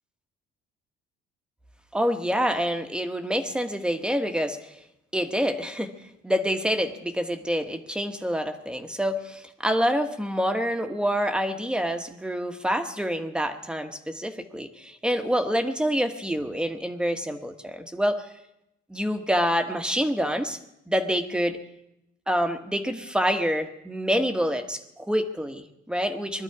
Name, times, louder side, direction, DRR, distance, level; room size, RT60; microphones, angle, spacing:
voice 1, 1.9-4.8 5.1-5.9 6.2-18.3 18.9-20.6 20.9-21.6 22.3-26.4, equal, 5° right, 6 dB, 1.3 m, -27 dB
21.5 x 13.0 x 4.8 m, 0.84 s
cardioid pair, 110°, 17 cm